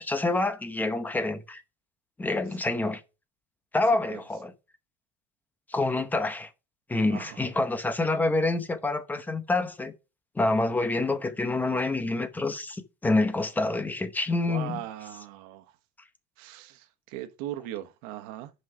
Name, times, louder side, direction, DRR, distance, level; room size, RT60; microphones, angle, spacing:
voice 1, 0.0-1.6 2.2-3.0 3.7-4.5 5.7-6.5 6.9-9.9 10.3-14.8, left 2 dB, 10° left, 0.9 m, -27 dB
voice 2, 7.1-7.4 14.5-15.7 16.4-18.5, right 13 dB, 90° right, 1.1 m, -39 dB
6.3 x 5.6 x 5.7 m
cardioid pair, 145°, 18 cm